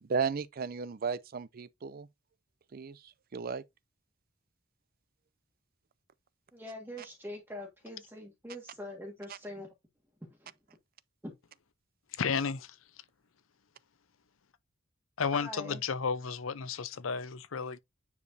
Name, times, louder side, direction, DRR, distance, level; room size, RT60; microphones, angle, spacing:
voice 1, 0.0-2.1 2.7-3.6 9.3-9.4, right 5 dB, 50° right, 0.5 m, -35 dB
voice 2, 6.5-9.7 10.4-10.5 11.2-11.3 15.3-15.8, left 1 dB, 10° right, 1.8 m, -43 dB
voice 3, 12.1-12.8 15.2-17.8, left 5 dB, 85° left, 0.7 m, -33 dB
9.5 x 4.8 x 2.7 m
head